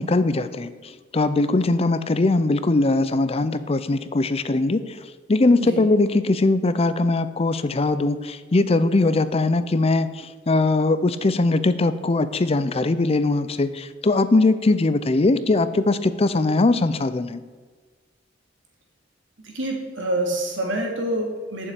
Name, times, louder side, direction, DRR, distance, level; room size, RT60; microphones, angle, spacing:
voice 1, 0.0-17.4, left 2 dB, 35° left, 13 dB, 0.5 m, -21 dB
voice 2, 19.4-21.7, right 1 dB, 90° right, 0 dB, 2.7 m, -27 dB
8.7 x 7.1 x 8.3 m, 1.4 s
head